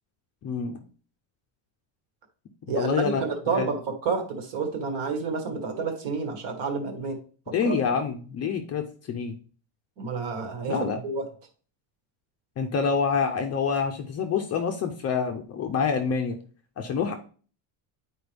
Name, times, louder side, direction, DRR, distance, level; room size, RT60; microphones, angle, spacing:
voice 1, 0.4-0.8 2.7-3.7 7.5-9.3 10.7-11.0 12.6-16.4 16.8-17.1, left 6 dB, 30° left, 5 dB, 0.5 m, -27 dB
voice 2, 2.7-7.2 7.5-7.7 10.0-11.2, right 4 dB, 55° right, 4 dB, 1.6 m, -29 dB
9.5 x 4.5 x 3.4 m, 0.41 s
cardioid pair, 175°, 49 cm